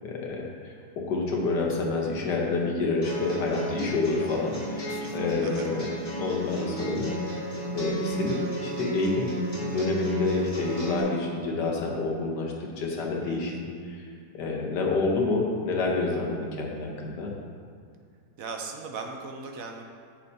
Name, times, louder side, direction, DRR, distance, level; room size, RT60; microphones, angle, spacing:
voice 1, 0.0-5.8 6.2-7.1 7.7-9.3 9.6-14.1 14.3-17.3, left 3 dB, 75° left, -1 dB, 1.7 m, -28 dB
sound 1, 3.0-11.0, right 2 dB, 20° left, 2.1 m, -33 dB
voice 2, 4.9-5.6 13.2-13.6 18.4-19.9, right 4 dB, 60° right, 3 dB, 1.0 m, -39 dB
9.1 x 7.5 x 2.8 m, 2.2 s
omnidirectional pair, 1.8 m